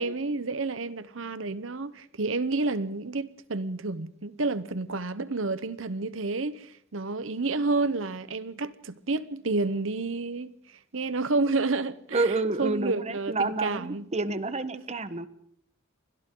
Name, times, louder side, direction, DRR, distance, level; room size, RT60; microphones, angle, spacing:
voice 1, 0.0-10.5 10.9-14.1 14.7-14.8, right 3 dB, 70° right, 1.0 m, -30 dB
voice 2, 12.1-15.3, right 3 dB, 35° right, 1.2 m, -29 dB
30.0 x 24.5 x 3.9 m
head